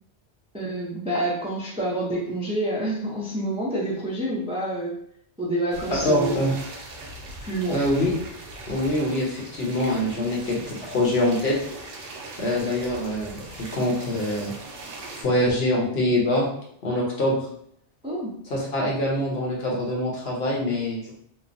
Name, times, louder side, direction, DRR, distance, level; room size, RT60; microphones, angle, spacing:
voice 1, 0.5-5.0 5.4-6.5 7.4-7.8 18.0-18.3, right 1 dB, 10° right, -5 dB, 0.3 m, -28 dB
sound 1, 5.7-15.2, right 2 dB, 75° right, 0.9 m, -40 dB
voice 2, 6.0-6.6 7.7-8.1 8.7-11.6 12.4-14.5 15.2-16.5 16.8-17.4 18.5-21.1, left 1 dB, 60° left, -3 dB, 1.0 m, -24 dB
3.0 x 2.0 x 2.5 m, 0.67 s
omnidirectional pair, 1.2 m